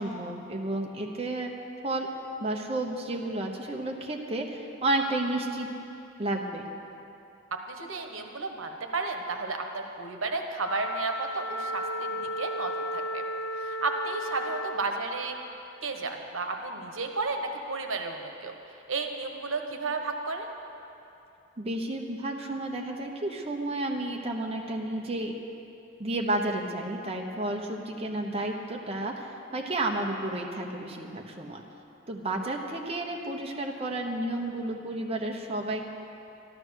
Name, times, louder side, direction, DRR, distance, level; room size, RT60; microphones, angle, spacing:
voice 1, 0.0-1.5 1.8-2.1 2.4-5.7 6.2-6.6 21.6-25.3 26.0-31.6 32.1-35.9, right 1 dB, 30° right, 0 dB, 1.0 m, -31 dB
voice 2, 7.5-13.2 13.6-15.3 15.8-18.5 18.9-20.5, right 3 dB, 85° right, 4 dB, 1.2 m, -33 dB
Wind instrument woodwind instrument, 10.6-14.9, equal, 80° left, 1.1 m, -34 dB
13.0 x 12.0 x 6.4 m, 2.8 s
head